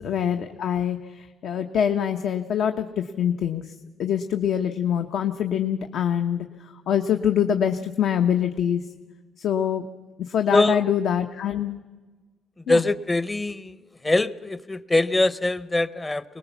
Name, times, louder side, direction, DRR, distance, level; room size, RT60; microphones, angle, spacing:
voice 1, 0.0-3.7 4.0-8.8 9.4-9.9 10.2-11.8 12.7-12.8, left 9 dB, 70° left, 6 dB, 0.9 m, -25 dB
voice 2, 12.7-13.8 14.0-16.4, left 2 dB, 15° left, 16 dB, 0.7 m, -23 dB
23.5 x 19.5 x 7.0 m, 1.3 s
cardioid pair, 115°, 0 cm